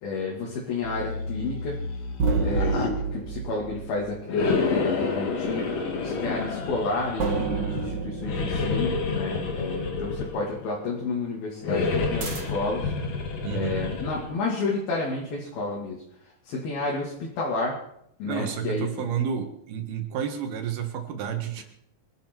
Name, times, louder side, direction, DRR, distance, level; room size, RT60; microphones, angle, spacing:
voice 1, 0.0-1.9 2.4-5.7 6.0-12.9 13.5-16.0 16.5-17.8 18.2-19.0, left 3 dB, 70° left, -4 dB, 4.2 m, -31 dB
sound 1, 0.8-2.9 4.3-7.9 8.2-10.6 11.6-14.4, left 4 dB, 50° left, 2.7 m, -29 dB
sound 2, 2.2-5.0 7.2-9.9 12.2-12.8, right 4 dB, 55° right, 1.2 m, -30 dB
voice 2, 13.4-13.8 18.3-21.6, right 8 dB, 75° right, 6 dB, 3.7 m, -30 dB
24.5 x 12.0 x 4.6 m, 0.72 s
omnidirectional pair, 4.4 m